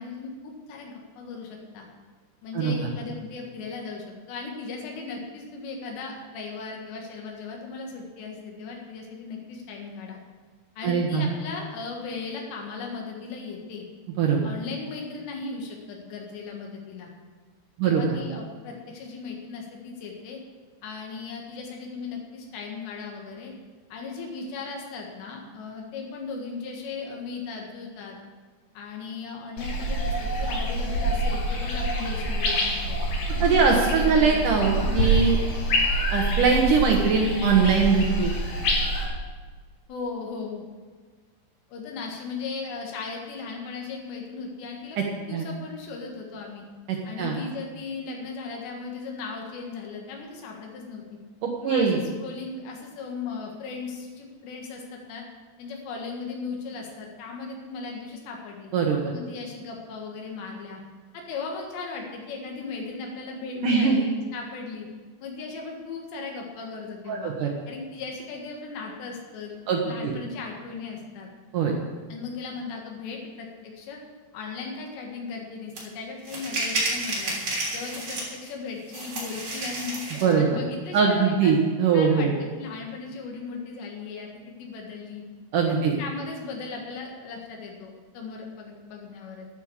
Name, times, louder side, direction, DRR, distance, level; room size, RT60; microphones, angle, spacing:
voice 1, 0.0-1.9 2.4-10.2 10.8-13.9 14.4-17.1 17.8-20.4 20.8-23.5 23.9-28.2 28.8-33.0 33.4-34.4 39.9-40.7 41.7-45.0 45.3-46.6 47.1-51.0 51.6-55.2 55.6-58.7 59.1-60.8 61.1-64.9 65.2-67.3 67.7-69.6 69.8-71.3 72.1-74.0 74.3-77.4 77.7-81.6 81.9-85.2 85.7-89.5, left 4 dB, 85° left, 0 dB, 3.9 m, -37 dB
voice 2, 10.8-11.3 14.2-14.4 17.8-18.2 33.4-35.4 36.1-38.3 45.0-45.1 45.3-45.5 46.9-47.3 51.4-52.0 58.7-59.1 63.6-64.0 67.1-67.5 69.7-70.1 71.5-71.7 80.2-80.6 80.9-82.3 85.5-85.9, right 5 dB, 65° right, 1 dB, 2.2 m, -22 dB
sound 1, 29.6-39.0, right 1 dB, 55° left, 3.5 m, -26 dB
sound 2, 75.8-75.9 76.2-78.5 78.9-80.3, right 2 dB, 35° right, 4.0 m, -30 dB
11.0 x 9.8 x 7.2 m, 1.5 s
omnidirectional pair, 4.9 m